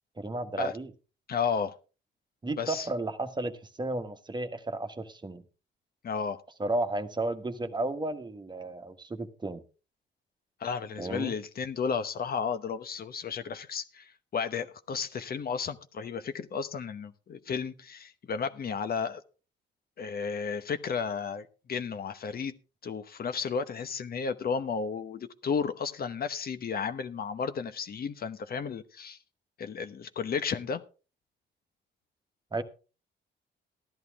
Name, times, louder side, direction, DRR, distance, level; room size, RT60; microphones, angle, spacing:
voice 1, 0.2-0.9 2.4-5.4 6.6-9.6 11.0-11.3 32.5-32.6, right 2 dB, 20° right, 1.3 m, -33 dB
voice 2, 1.3-1.7 2.6-2.9 6.0-6.4 10.6-19.2 20.0-22.5 22.8-29.2 29.6-30.8, left 6 dB, 50° left, 1.0 m, -33 dB
14.0 x 11.0 x 3.5 m
cardioid pair, 90°, 20 cm